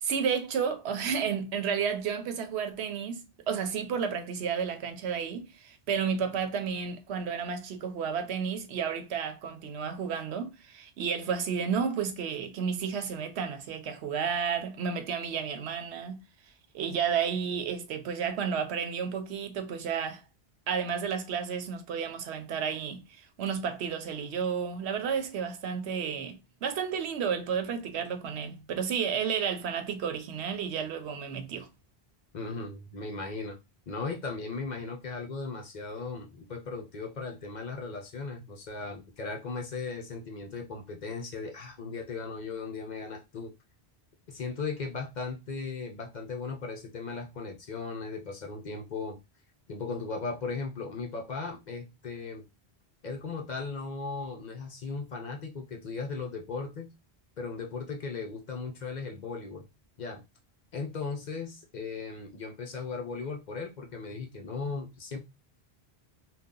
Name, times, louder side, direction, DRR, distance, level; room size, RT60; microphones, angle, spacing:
voice 1, 0.0-16.2 16.7-20.2 20.7-31.7, right 7 dB, 90° right, 0.9 m, -32 dB
voice 2, 32.3-33.6 33.9-43.5 44.3-49.2 49.7-52.4 53.0-56.9 57.4-59.7 60.0-60.2 60.7-65.2, left 4 dB, 50° left, 0.7 m, -37 dB
2.7 x 2.3 x 3.6 m
omnidirectional pair, 1.1 m